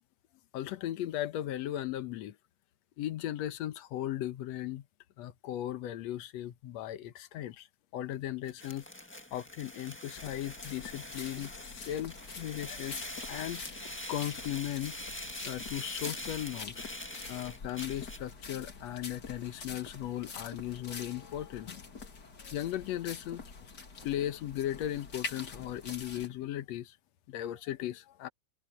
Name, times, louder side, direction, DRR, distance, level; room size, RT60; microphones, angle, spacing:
voice 1, 0.5-2.4 3.0-4.8 5.2-7.7 7.9-8.9 9.3-13.6 14.1-14.9 15.4-16.9 17.3-21.8 22.4-23.4 24.0-27.0 27.3-28.3, left 12 dB, 70° left, 2.1 m, -37 dB
sound 1, 8.5-18.3, left 1 dB, 10° left, 0.7 m, -44 dB
sound 2, 10.1-26.3, left 4 dB, 35° left, 2.5 m, -46 dB
omnidirectional pair, 3.4 m